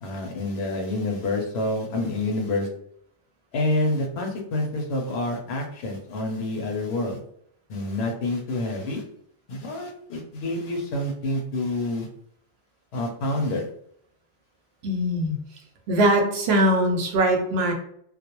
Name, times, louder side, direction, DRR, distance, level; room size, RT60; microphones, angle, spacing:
voice 1, 0.0-2.7 3.5-7.2 7.7-9.0 9.5-12.1 12.9-13.7, left 2 dB, 90° left, 3 dB, 0.9 m, -27 dB
voice 2, 14.8-15.4 15.9-17.7, right 1 dB, 80° right, 3 dB, 0.8 m, -21 dB
2.3 x 2.1 x 2.8 m, 0.69 s
omnidirectional pair, 1.0 m